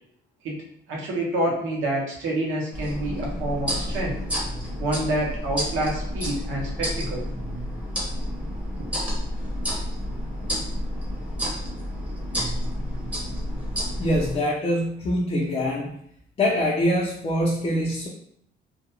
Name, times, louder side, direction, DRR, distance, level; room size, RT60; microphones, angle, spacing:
voice 1, 0.9-4.2 4.8-7.2, right 1 dB, 85° right, -2 dB, 0.8 m, -27 dB
sound 1, 2.7-14.4, equal, 5° right, 0.8 m, -30 dB
voice 2, 14.0-15.9 16.4-18.1, left 1 dB, 30° left, -5 dB, 0.5 m, -24 dB
2.5 x 2.1 x 2.8 m, 0.68 s
cardioid pair, 90°, 20 cm